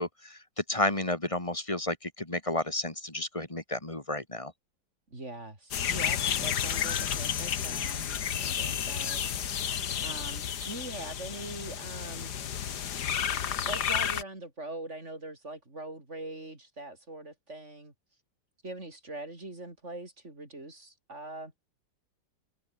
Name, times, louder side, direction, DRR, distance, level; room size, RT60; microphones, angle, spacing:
voice 1, 0.0-4.5, left 1 dB, 15° left, 2.6 m, -32 dB
voice 2, 5.1-9.2 10.0-12.3 13.7-17.9 18.6-21.5, right 2 dB, 35° right, 5.6 m, -42 dB
sound 1, 5.7-14.2, left 9 dB, 65° left, 1.8 m, -31 dB
omnidirectional pair, 2.0 m